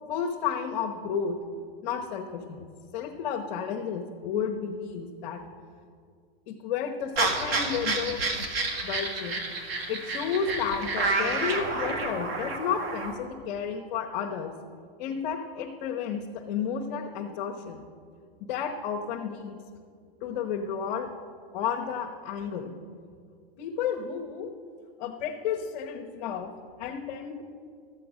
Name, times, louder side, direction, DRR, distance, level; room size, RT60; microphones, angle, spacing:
voice 1, 0.1-1.4 1.8-2.7 2.9-5.4 6.5-8.5 8.8-9.4 9.9-14.5 15.0-17.8 18.4-19.6 20.2-21.1 21.5-22.7 23.6-24.5 25.0-26.5 26.8-27.4, left 7 dB, 50° left, 1 dB, 1.0 m, -32 dB
sound 1, 7.2-13.1, right 3 dB, 70° right, 1.8 m, -30 dB
13.5 x 7.7 x 6.4 m, 2.2 s
hypercardioid pair, 150°, 31 cm